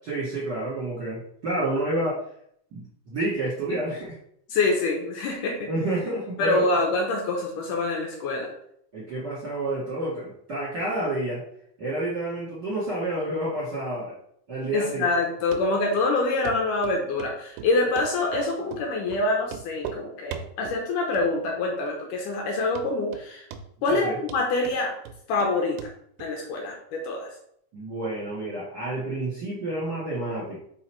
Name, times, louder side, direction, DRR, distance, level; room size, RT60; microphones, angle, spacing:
voice 1, 0.0-2.2 2.7-4.1 5.7-6.7 8.9-11.4 11.8-14.1 14.5-15.1 23.9-24.2 27.7-30.6, right 1 dB, 40° right, -7 dB, 1.6 m, -29 dB
voice 2, 4.5-5.7 6.4-8.5 14.7-23.5 23.8-25.0 25.3-25.9 26.2-27.3, left 2 dB, 70° left, 0 dB, 2.2 m, -26 dB
Run, 15.5-15.6 16.0-16.1 16.4-16.6 16.8-17.3 17.6-18.4 18.7-18.8 19.1-19.2 19.5-20.0 20.3-20.8 21.1-21.6 21.9-22.0 22.4-22.5 22.8-23.3 23.5-24.0 24.3-25.5 25.8-25.9 26.2-26.3, right 8 dB, 90° right, 2.6 m, -38 dB
5.4 x 4.7 x 4.5 m, 0.69 s
omnidirectional pair, 4.3 m